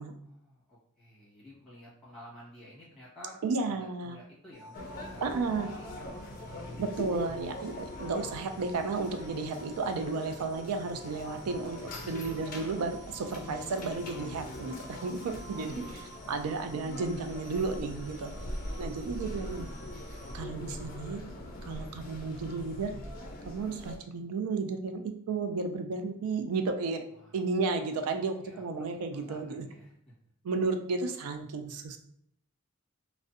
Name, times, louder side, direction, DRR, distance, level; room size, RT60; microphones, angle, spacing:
voice 1, 0.2-3.4 3.7-5.2 5.6-6.0 11.8-11.9 16.3-16.4 17.9-18.4 27.1-27.3 28.0-28.1 28.4-29.9, equal, ahead, -9 dB, 1.1 m, -52 dB
voice 2, 3.4-4.2 5.2-5.7 6.8-11.8 12.1-18.3 18.8-19.7 20.3-21.2 21.6-22.9 23.4-27.0 27.3-29.7 30.4-32.0, right 4 dB, 85° right, 7 dB, 0.3 m, -33 dB
sound 1, 4.5-20.4, right 1 dB, 35° right, 0.5 m, -52 dB
sound 2, 4.7-24.0, left 1 dB, 40° left, 0.4 m, -42 dB
2.5 x 2.1 x 2.4 m, 0.74 s
head